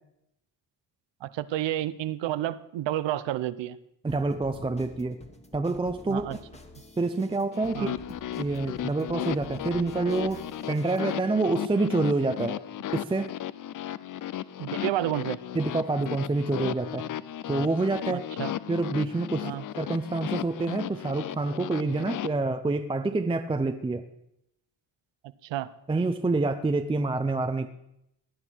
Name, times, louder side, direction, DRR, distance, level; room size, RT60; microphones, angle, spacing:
voice 1, 1.2-3.8 6.1-6.4 7.7-7.9 14.6-15.4 18.1-18.5 19.4-19.6 25.4-25.7, right 13 dB, 80° right, 15 dB, 0.8 m, -30 dB
voice 2, 4.0-5.2 5.5-6.4 7.0-7.9 8.4-12.6 12.9-13.3 15.5-17.0 17.5-18.2 18.7-19.5 19.8-24.0 25.9-27.7, right 3 dB, 15° right, 8 dB, 0.5 m, -27 dB
sound 1, 4.1-11.2, left 2 dB, 15° left, 1.4 m, -48 dB
sound 2, 7.5-22.3, left 11 dB, 50° left, 0.5 m, -35 dB
17.5 x 10.5 x 4.5 m, 0.80 s
cardioid pair, 130°, 43 cm